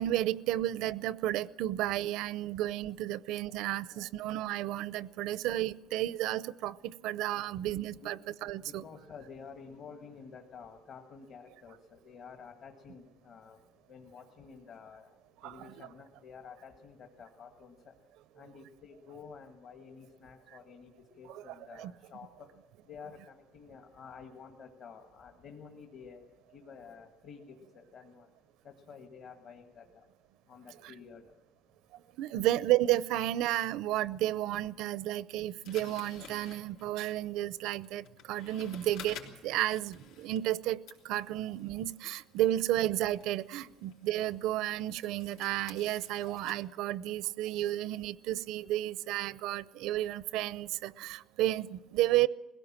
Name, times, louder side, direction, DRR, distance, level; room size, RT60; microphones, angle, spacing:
voice 1, 0.0-8.8 15.4-15.9 21.3-21.9 30.8-30.9 32.2-39.2 39.4-40.8 41.0-52.3, right 14 dB, 70° right, 0.6 m, -32 dB
voice 2, 8.4-13.6 13.9-15.1 15.4-17.7 18.4-22.5 22.8-26.2 26.5-28.3 28.6-29.9 30.5-31.2 42.4-42.5, left 6 dB, 40° left, 1.5 m, -51 dB
sound 1, 35.6-40.6 40.9-46.6, left 7 dB, 85° left, 4.3 m, -53 dB
21.5 x 17.0 x 7.4 m
cardioid pair, 175°, 0 cm